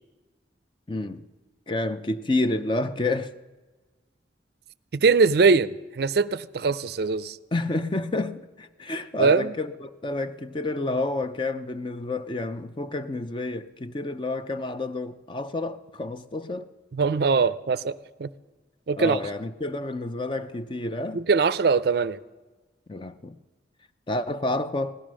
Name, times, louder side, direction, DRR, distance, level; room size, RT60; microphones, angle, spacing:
voice 1, 0.9-1.2 1.7-3.3 7.5-16.7 19.0-21.2 22.9-23.3 24.1-24.9, left 2 dB, 25° left, 0.5 m, -29 dB
voice 2, 4.9-7.4 9.2-9.5 16.9-18.3 18.9-19.3 21.1-22.2, right 4 dB, 55° right, 0.4 m, -22 dB
16.5 x 12.5 x 6.3 m
head